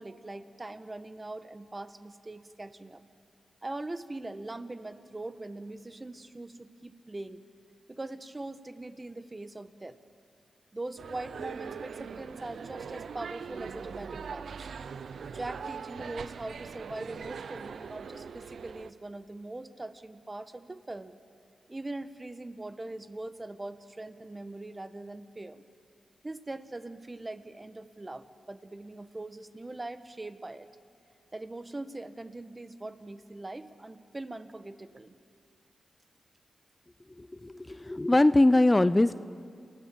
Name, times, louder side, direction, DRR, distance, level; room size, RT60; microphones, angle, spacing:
voice 1, 0.0-3.0 3.6-7.4 7.9-10.0 10.7-14.6 15.3-21.2 21.7-25.6 26.2-30.7 31.3-35.1, right 2 dB, 30° right, 11 dB, 1.2 m, -41 dB
sound 1, 11.0-18.9, right 6 dB, 75° right, 0.7 m, -41 dB
voice 2, 37.2-39.1, left 2 dB, 25° left, 14 dB, 0.5 m, -22 dB
29.0 x 16.5 x 7.6 m, 2.2 s
cardioid pair, 50°, 0 cm